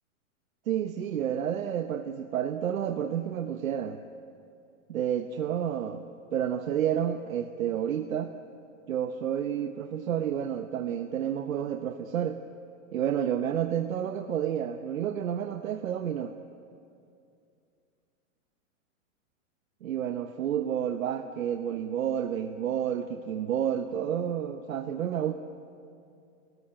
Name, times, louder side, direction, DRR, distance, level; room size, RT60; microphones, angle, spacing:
voice 1, 0.7-4.0 4.9-8.3 8.9-12.4 12.9-16.3 19.8-25.3, right 9 dB, 90° right, 7 dB, 1.1 m, -30 dB
28.5 x 14.5 x 8.9 m, 2.6 s
hypercardioid pair, 160°, 40 cm